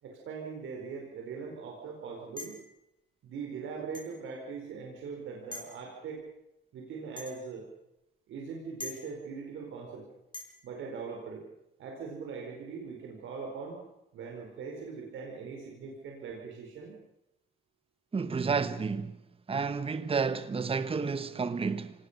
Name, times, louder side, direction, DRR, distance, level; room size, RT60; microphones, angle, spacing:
voice 1, 0.0-2.6 3.2-6.2 6.7-7.7 8.3-10.1 10.6-11.5 11.8-13.8 14.1-17.0, right 5 dB, 75° right, 4.5 m, -41 dB
sound 1, 2.4-2.7 3.9-4.1 5.5-5.8 7.2-7.4 8.8-9.0 10.3-10.5, left 2 dB, 25° left, 6.0 m, -42 dB
voice 2, 18.1-19.1 19.5-21.9, right 5 dB, 30° right, 1.2 m, -30 dB
25.0 x 19.0 x 6.7 m
cardioid pair, 90°, 20 cm